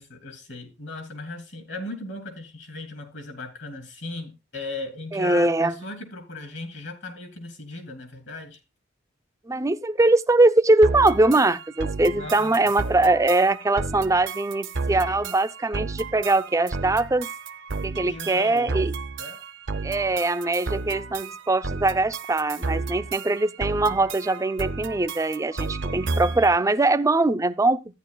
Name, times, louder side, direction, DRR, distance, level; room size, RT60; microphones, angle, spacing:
voice 1, 0.0-8.6 12.1-12.7 18.0-18.9 19.2-19.4, left 2 dB, 65° left, 3.0 m, -37 dB
voice 2, 5.1-5.7 9.5-17.3 17.8-18.9 19.8-27.8, right 2 dB, 15° right, 0.5 m, -22 dB
sound 1, 10.8-26.6, right 3 dB, 70° right, 0.7 m, -32 dB
13.5 x 9.6 x 2.3 m
head